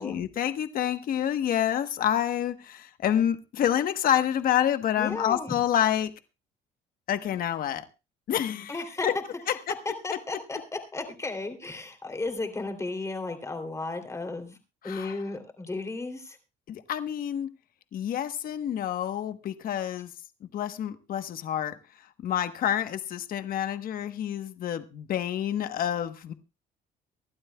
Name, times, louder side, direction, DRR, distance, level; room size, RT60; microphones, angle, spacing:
voice 1, 0.0-6.1 7.1-7.9 8.3-9.1 9.5-9.7 14.8-15.2 16.7-17.5 17.9-20.1 20.4-21.7 22.2-26.3, left 10 dB, 60° left, 10 dB, 1.1 m, -28 dB
voice 2, 5.0-5.5 8.7-9.1 10.0-14.6 14.8-16.4, left 3 dB, 15° left, 6 dB, 2.9 m, -34 dB
24.5 x 12.0 x 2.3 m, 0.28 s
cardioid pair, 110°, 17 cm